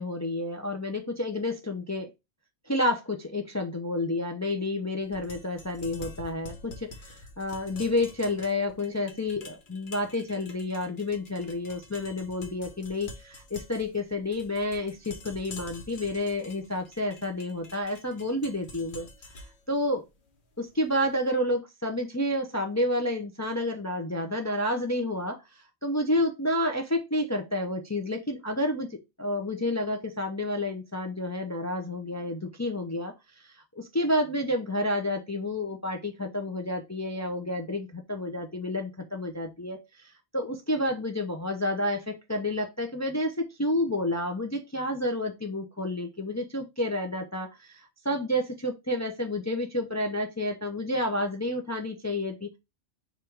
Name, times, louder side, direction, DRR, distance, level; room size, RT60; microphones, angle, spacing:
voice 1, 0.0-2.1 2.7-19.1 19.4-20.0 20.6-28.9 29.2-33.1 33.4-52.6, left 1 dB, 25° left, 3 dB, 0.4 m, -30 dB
sound 1, 5.0-21.1, left 2 dB, 50° left, 1.0 m, -47 dB
4.9 x 2.5 x 4.5 m, 0.23 s
omnidirectional pair, 1.1 m